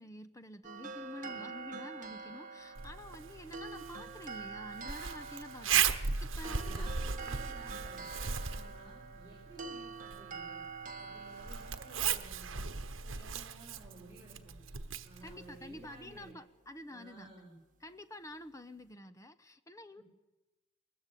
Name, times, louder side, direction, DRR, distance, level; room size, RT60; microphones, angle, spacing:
voice 1, 0.0-6.9 15.2-17.3 17.8-20.0, left 1 dB, 15° left, 11 dB, 1.0 m, -49 dB
sound 1, 0.6-13.9, right 4 dB, 40° right, 1.4 m, -46 dB
Zipper (clothing), 2.8-16.3, right 7 dB, 75° right, 1.1 m, -38 dB
voice 2, 6.4-10.6 11.0-12.7 13.0-14.6 15.0-16.4 16.9-17.6 20.0-20.1, right 2 dB, 10° right, -5 dB, 6.6 m, -55 dB
21.0 x 20.5 x 8.5 m, 1.1 s
head